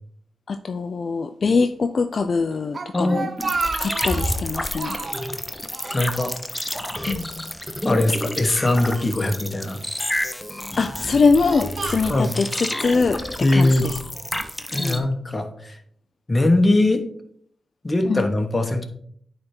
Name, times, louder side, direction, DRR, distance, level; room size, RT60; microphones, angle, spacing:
voice 1, 0.5-3.3 3.8-4.9 7.1-7.3 10.8-13.2 13.5-14.0 14.8-15.1 18.0-18.3, left 4 dB, 60° left, 9 dB, 0.4 m, -22 dB
Speech, 2.5-4.4 4.8-5.3 5.7-6.8 7.1-7.2 8.1-9.1 9.8-10.2 10.8-12.5, right 4 dB, 55° right, 0.6 m, -32 dB
voice 2, 2.9-3.3 5.9-6.3 7.8-9.8 12.0-12.4 13.4-13.9 14.7-15.8 16.3-17.0 17.8-18.9, left 2 dB, 30° left, 5 dB, 1.2 m, -21 dB
sound 1, 3.4-15.0, left 1 dB, 10° left, 0.8 m, -29 dB
9.3 x 3.3 x 4.4 m, 0.64 s
cardioid pair, 60°, 0 cm